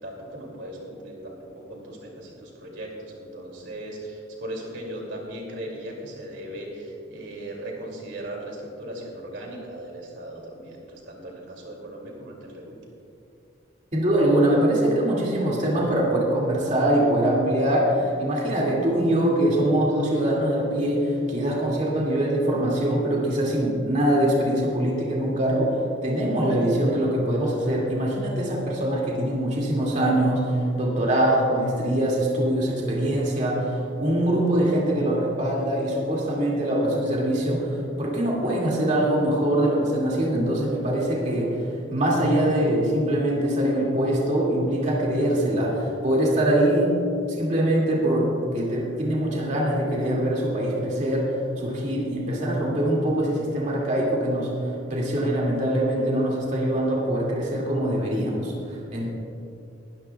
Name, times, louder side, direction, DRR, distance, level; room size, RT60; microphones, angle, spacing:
voice 1, 0.0-12.8, right 1 dB, 90° right, -1 dB, 2.6 m, -38 dB
voice 2, 13.9-41.6 41.9-47.0 47.3-51.3 51.6-59.1, right 1 dB, 40° right, -4 dB, 2.3 m, -23 dB
20.5 x 12.5 x 2.4 m, 2.6 s
head